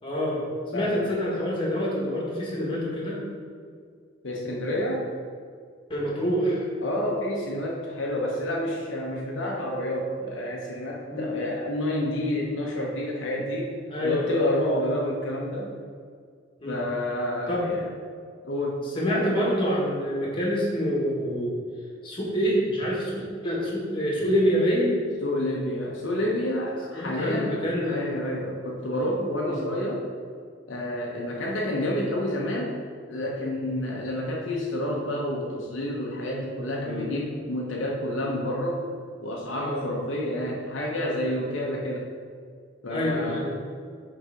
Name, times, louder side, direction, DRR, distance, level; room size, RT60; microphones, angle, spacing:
voice 1, 0.0-3.2 5.9-6.6 11.1-11.3 13.9-14.5 16.6-16.8 17.5-17.7 18.9-21.5 22.0-25.0 26.9-28.0 29.5-29.6 36.8-37.1 39.6-39.8 41.4-41.6 42.9-43.5, equal, 25° left, -4 dB, 1.6 m, -26 dB
voice 2, 0.7-1.1 4.2-5.1 6.8-15.7 16.6-17.9 18.4-18.8 25.2-30.1 30.7-32.8 33.1-38.8 39.2-42.1 42.8-43.5, left 1 dB, 75° left, -2 dB, 0.9 m, -29 dB
6.6 x 4.0 x 5.0 m, 2.1 s
head